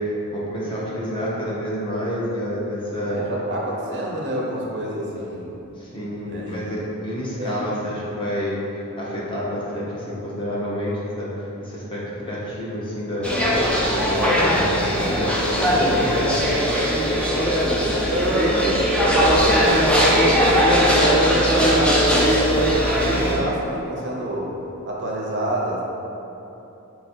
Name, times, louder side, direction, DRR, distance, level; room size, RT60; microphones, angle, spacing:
voice 1, 0.0-3.2 5.8-8.6 9.0-11.3 11.6-13.3 13.9-16.3, equal, 20° left, -7 dB, 0.8 m, -28 dB
voice 2, 3.1-5.5 6.3-6.7 7.4-7.9 18.0-18.6 18.9-24.5 24.9-25.8, right 1 dB, 50° right, -3 dB, 0.6 m, -28 dB
sound 1, 13.2-23.4, equal, 5° left, 0.4 m, -19 dB
4.3 x 2.6 x 4.2 m, 3.0 s
head